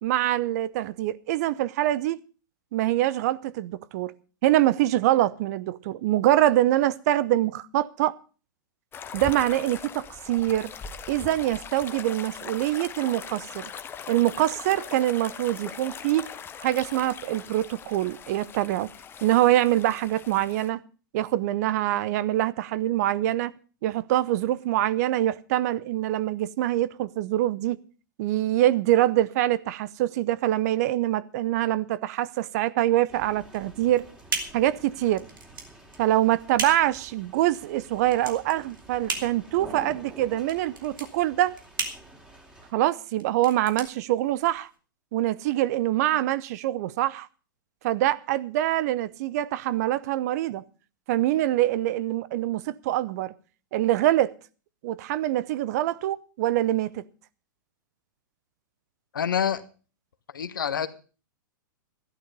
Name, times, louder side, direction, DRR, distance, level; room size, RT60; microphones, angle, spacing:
voice 1, 0.0-2.2 2.7-4.1 4.4-8.2 9.1-10.7 11.1-13.7 14.1-16.3 16.6-18.9 19.2-20.8 21.1-27.8 28.2-34.1 34.5-35.2 36.0-41.6 42.7-44.7 45.1-47.3 47.8-50.6 51.1-53.3 53.7-54.3 54.8-57.0, right 14 dB, 50° right, 0.8 m, -24 dB
sound 1, 8.9-20.7, left 7 dB, 20° left, 0.9 m, -41 dB
sound 2, 33.1-42.7, right 2 dB, 10° right, 3.1 m, -48 dB
sound 3, 33.5-44.8, right 4 dB, 80° right, 3.0 m, -37 dB
voice 2, 59.1-59.6 60.3-60.9, left 8 dB, 75° left, 1.3 m, -26 dB
13.5 x 11.5 x 5.3 m
hypercardioid pair, 105°, 11 cm